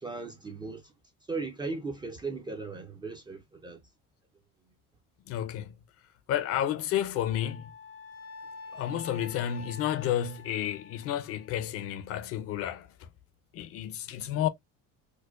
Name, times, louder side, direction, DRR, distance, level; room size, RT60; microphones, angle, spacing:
voice 1, 0.0-0.8 1.3-3.8, right 4 dB, 15° right, 0.4 m, -37 dB
voice 2, 5.2-5.8 6.3-7.7 8.7-13.1 13.5-14.5, left 11 dB, 45° left, 0.5 m, -31 dB
Wind instrument woodwind instrument, 7.3-11.7, left 3 dB, 85° left, 1.2 m, -47 dB
4.5 x 2.1 x 2.4 m
cardioid pair, 160°, 33 cm